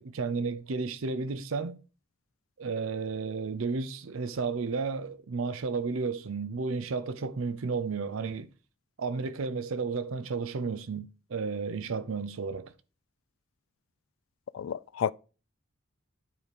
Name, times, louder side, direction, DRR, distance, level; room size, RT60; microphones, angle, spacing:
voice 1, 0.0-1.8 2.6-8.5 9.0-12.7, right 4 dB, 70° right, 0.5 m, -32 dB
voice 2, 14.5-15.1, left 8 dB, 70° left, 0.3 m, -30 dB
9.7 x 4.8 x 5.2 m
head